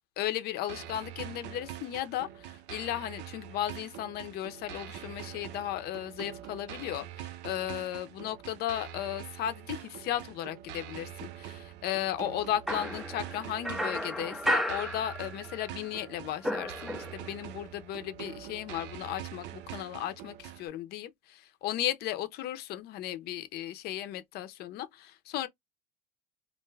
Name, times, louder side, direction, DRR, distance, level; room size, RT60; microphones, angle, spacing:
voice 1, 0.2-25.5, left 12 dB, 55° left, 0.6 m, -35 dB
sound 1, 0.7-20.7, right 11 dB, 65° right, 0.5 m, -44 dB
sound 2, 12.7-15.7 16.0-17.4, equal, ahead, 0.3 m, -33 dB
2.5 x 2.3 x 3.2 m
supercardioid pair, 120°, 20 cm